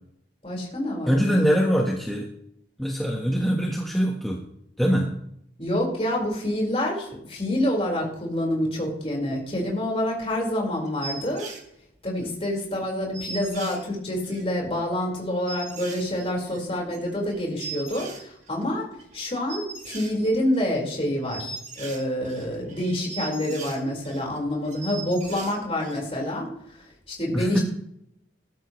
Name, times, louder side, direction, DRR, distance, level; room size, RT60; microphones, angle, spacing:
voice 1, 0.4-1.6 3.3-3.4 5.6-11.5 12.0-18.9 19.1-26.8 27.1-27.6, left 1 dB, 30° left, -1 dB, 4.9 m, -27 dB
voice 2, 1.0-2.3 2.8-4.4 4.8-5.1 27.3-27.6, equal, ahead, -2 dB, 1.4 m, -23 dB
sound 1, 10.9-11.6 12.2-12.3 12.5-12.6 12.8-12.9 13.1-14.5 15.0-15.1 15.5-18.6 18.9-19.2 19.5-20.8 21.1-24.4 24.6-26.0 26.3-26.4, right 4 dB, 40° right, 2.5 m, -39 dB
19.0 x 13.0 x 3.2 m, 0.73 s
head